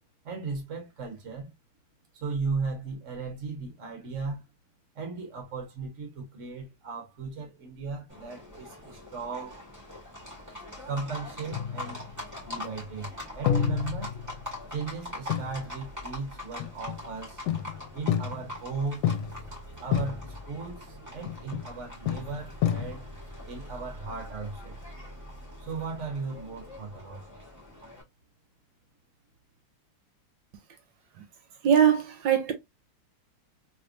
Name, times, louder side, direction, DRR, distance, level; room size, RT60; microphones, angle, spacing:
voice 1, 0.2-1.5 2.1-4.4 4.9-9.6 10.9-12.0 12.4-14.1 14.7-17.4 17.9-19.1 19.8-23.1 23.5-24.8 25.6-27.2, right 4 dB, 45° right, 1.2 m, -36 dB
Livestock farm animals working animals, 8.1-28.0, left 1 dB, 10° right, 1.6 m, -43 dB
sound 1, 11.5-12.4 13.5-14.7 15.3-15.6 16.6-17.1 17.5-18.6 19.0-19.6 19.9-20.5 21.3-21.8 22.1-23.2, left 9 dB, 90° left, 1.4 m, -30 dB
voice 2, 31.6-32.5, right 8 dB, 70° right, 1.3 m, -22 dB
3.4 x 3.3 x 2.5 m
omnidirectional pair, 2.2 m